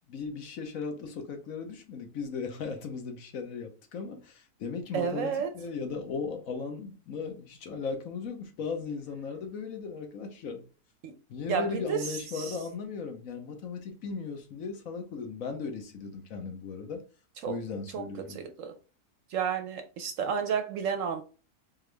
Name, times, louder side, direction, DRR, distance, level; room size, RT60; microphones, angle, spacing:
voice 1, 0.1-10.6 11.3-17.0 17.5-18.4, left 5 dB, 65° left, 1.2 m, -37 dB
voice 2, 4.9-5.5 11.0-11.1 11.5-12.6 17.4-17.6 17.9-18.7 19.3-21.2, right 6 dB, 65° right, 0.9 m, -31 dB
3.8 x 3.5 x 3.3 m
omnidirectional pair, 1.6 m